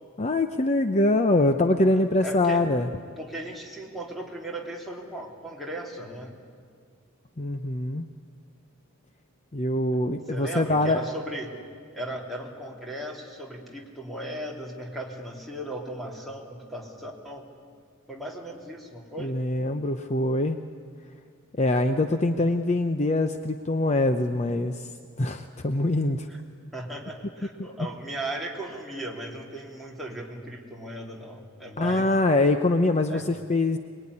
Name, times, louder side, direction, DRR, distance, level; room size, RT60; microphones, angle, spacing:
voice 1, 0.2-2.9 7.4-8.0 9.5-11.0 19.2-20.6 21.6-24.9 25.2-26.3 31.8-33.8, left 2 dB, 35° left, 7 dB, 0.8 m, -24 dB
voice 2, 1.9-2.6 3.2-6.3 10.3-11.6 11.9-17.5 18.1-19.3 26.3-26.4 26.7-32.1 33.1-33.2, right 1 dB, ahead, -2 dB, 3.3 m, -37 dB
25.0 x 21.0 x 9.8 m, 2.1 s
head